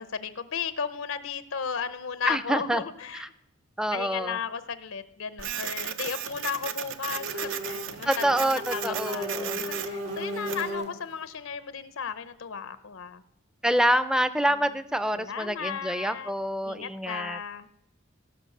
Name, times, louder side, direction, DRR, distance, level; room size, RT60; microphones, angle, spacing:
voice 1, 0.0-3.3 3.9-13.2 14.5-14.8 15.1-16.3 16.6-17.7, left 6 dB, 85° left, 13 dB, 0.7 m, -35 dB
voice 2, 2.3-2.8 3.1-3.3 3.8-4.4 8.0-9.6 13.6-17.4, right 1 dB, 5° right, 13 dB, 0.4 m, -27 dB
Printer, 5.4-10.7, right 9 dB, 75° right, 0.7 m, -35 dB
sound 1, 7.1-7.9 8.2-11.1, equal, 55° right, 2.5 m, -35 dB
18.0 x 6.1 x 6.5 m, 0.84 s
head